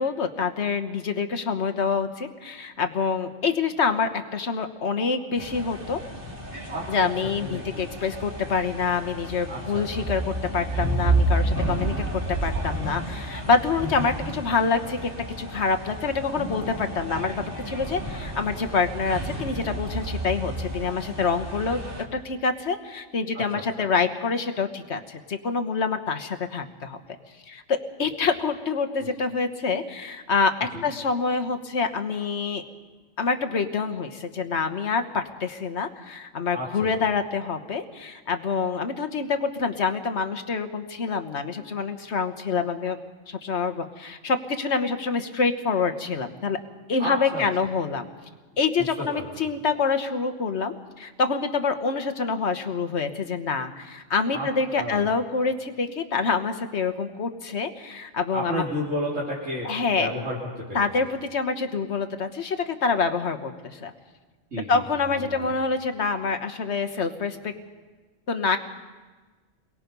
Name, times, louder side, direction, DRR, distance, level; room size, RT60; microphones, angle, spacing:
voice 1, 0.0-6.0 6.9-15.1 15.4-21.8 22.1-27.0 27.5-32.6 33.2-43.0 43.3-46.6 46.9-48.1 48.6-58.6 59.6-60.1 60.7-63.9 64.7-67.5 68.3-68.6, left 5 dB, 65° left, 8 dB, 1.6 m, -26 dB
sound 1, 5.4-22.0, right 1 dB, 45° right, 3.0 m, -31 dB
voice 2, 6.7-7.9 9.5-9.9 23.3-23.9 28.1-28.2 29.0-29.1 30.7-30.9 36.5-36.9 47.0-47.4 49.0-49.2 54.3-54.5 54.7-55.0 58.3-60.8 64.5-65.5, equal, 85° right, -7 dB, 3.9 m, -32 dB
29.5 x 23.0 x 5.4 m, 1.3 s
omnidirectional pair, 1.3 m